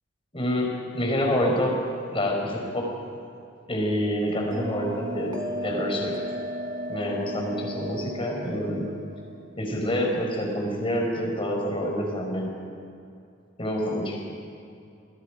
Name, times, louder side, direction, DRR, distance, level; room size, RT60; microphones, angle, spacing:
voice 1, 0.3-1.8 2.1-2.9 3.7-5.4 5.6-6.2 6.9-8.9 9.6-12.5 13.6-14.2, equal, 25° left, 0 dB, 5.1 m, -27 dB
Bell, 4.5-9.6, equal, 20° right, 2.3 m, -35 dB
30.0 x 21.0 x 5.1 m, 2.5 s
head